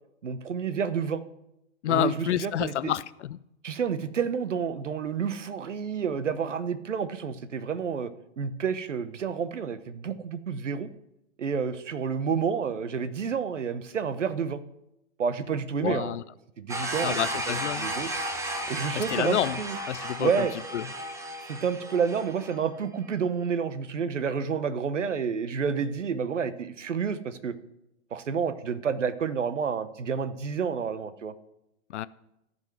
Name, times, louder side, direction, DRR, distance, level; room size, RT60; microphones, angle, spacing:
voice 1, 0.2-1.2 1.9-2.9 3.6-8.1 8.4-10.9 11.4-14.6 15.2-16.1 16.6-18.1 18.7-19.8 20.2-20.5 21.5-27.5 28.1-31.3, right 6 dB, 90° right, 14 dB, 0.8 m, -29 dB
voice 2, 1.8-3.4 15.8-16.2 17.0-17.9 18.9-19.6 19.8-20.5 20.7-20.9 31.9-32.1, left 12 dB, 75° left, 17 dB, 0.5 m, -29 dB
sound 1, 16.7-22.6, right 1 dB, 10° right, 1.0 m, -34 dB
13.5 x 5.3 x 6.0 m, 0.86 s
hypercardioid pair, 115°, 36 cm